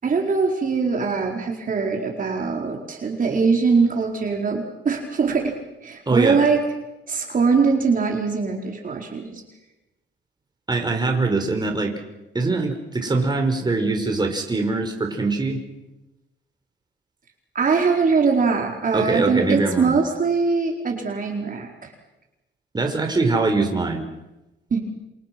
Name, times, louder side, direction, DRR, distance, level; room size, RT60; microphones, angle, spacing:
voice 1, 0.0-5.5 5.8-6.6 7.1-9.4 17.5-21.9 24.7-24.8, right 4 dB, 45° right, 1 dB, 4.7 m, -22 dB
voice 2, 6.1-6.4 10.7-11.9 12.3-15.6 18.9-20.0 22.7-24.1, right 3 dB, 20° right, 3 dB, 5.3 m, -22 dB
28.0 x 27.5 x 6.2 m, 1.0 s
cardioid pair, 90°, 20 cm